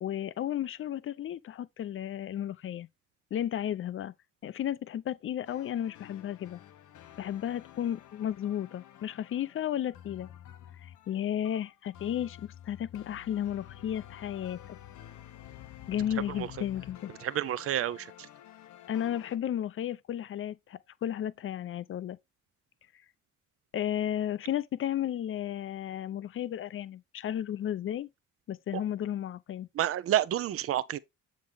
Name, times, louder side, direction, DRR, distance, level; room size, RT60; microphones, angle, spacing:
voice 1, 0.0-2.9 3.3-4.1 4.4-6.6 7.2-10.3 10.8-14.8 15.9-17.1 18.9-22.2 23.7-28.1 28.5-29.7, left 10 dB, 45° left, 0.5 m, -33 dB
sound 1, 5.5-19.4, left 12 dB, 75° left, 0.7 m, -50 dB
voice 2, 17.2-18.1 29.7-31.0, right 12 dB, 50° right, 0.5 m, -29 dB
7.3 x 3.9 x 3.4 m
cardioid pair, 90°, 30 cm